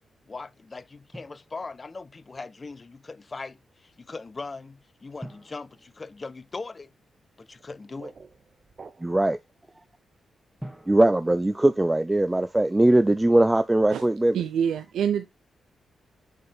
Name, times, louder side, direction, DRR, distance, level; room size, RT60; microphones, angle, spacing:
voice 1, 0.3-6.9 7.4-8.1, left 3 dB, 40° left, 0.4 m, -40 dB
Drum, 1.1-2.2 5.2-7.0 10.6-12.6, right 1 dB, 5° right, 1.9 m, -47 dB
sound 1, 7.5-9.4, right 4 dB, 50° right, 0.7 m, -49 dB
voice 2, 9.0-9.4 10.9-14.4, right 1 dB, 20° right, 0.5 m, -20 dB
voice 3, 14.3-15.3, right 8 dB, 80° right, 0.4 m, -26 dB
6.7 x 4.4 x 3.3 m
supercardioid pair, 45°, 0 cm